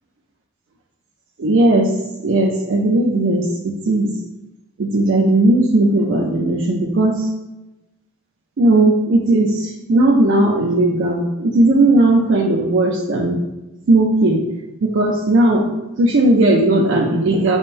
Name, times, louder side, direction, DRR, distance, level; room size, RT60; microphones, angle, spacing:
voice 1, 1.4-1.9 2.2-4.1 4.8-7.3 8.6-13.4 13.9-14.5 14.8-15.7 16.0-17.6, right 2 dB, 55° right, -1 dB, 0.4 m, -16 dB
5.3 x 3.5 x 2.5 m, 1.0 s
head